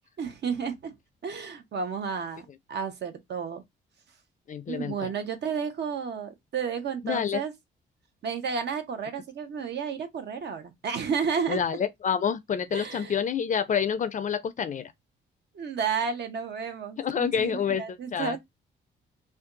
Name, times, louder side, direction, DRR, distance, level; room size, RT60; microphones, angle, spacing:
voice 1, 0.2-0.9 1.2-3.6 4.7-7.5 8.2-11.6 12.7-13.2 15.5-18.4, right 6 dB, 60° right, 0.8 m, -32 dB
voice 2, 4.5-5.1 7.0-7.4 11.5-14.9 17.0-18.4, left 7 dB, 40° left, 0.4 m, -28 dB
2.6 x 2.3 x 3.7 m
cardioid pair, 90°, 20 cm